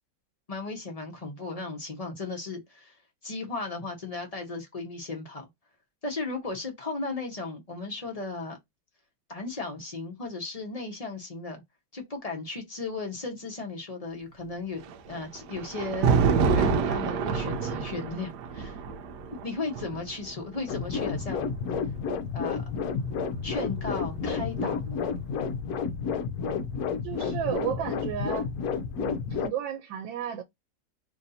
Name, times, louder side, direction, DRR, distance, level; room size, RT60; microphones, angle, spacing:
voice 1, 0.5-3.0 3.2-5.5 6.0-8.6 9.3-11.6 11.9-14.8 15.1-16.2 16.5-18.8 19.4-21.5 22.3-22.6 23.4-25.0, left 3 dB, 35° left, 0.6 m, -35 dB
Thunder, 14.8-22.0 23.1-24.8, right 5 dB, 75° right, 1.1 m, -28 dB
sound 1, 20.7-29.5, left 6 dB, 70° left, 0.9 m, -31 dB
voice 2, 27.0-28.5 29.0-30.4, right 9 dB, 90° right, 1.3 m, -33 dB
3.1 x 2.6 x 4.0 m
omnidirectional pair, 2.0 m